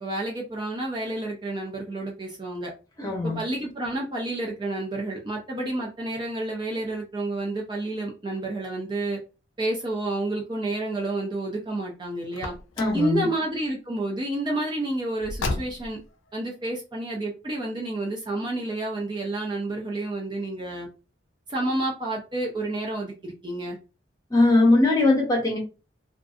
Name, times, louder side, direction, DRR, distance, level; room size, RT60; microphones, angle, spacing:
voice 1, 0.0-2.7 3.2-9.2 9.6-12.5 12.9-16.0 16.3-20.9 21.5-23.8, right 2 dB, 25° right, 0 dB, 0.4 m, -30 dB
voice 2, 3.0-3.4 12.8-13.3 24.3-25.6, left 2 dB, 20° left, 0 dB, 0.7 m, -20 dB
Car, 12.3-13.1 15.2-16.1, left 2 dB, 85° left, 0.4 m, -32 dB
2.5 x 2.4 x 2.3 m, 0.32 s
head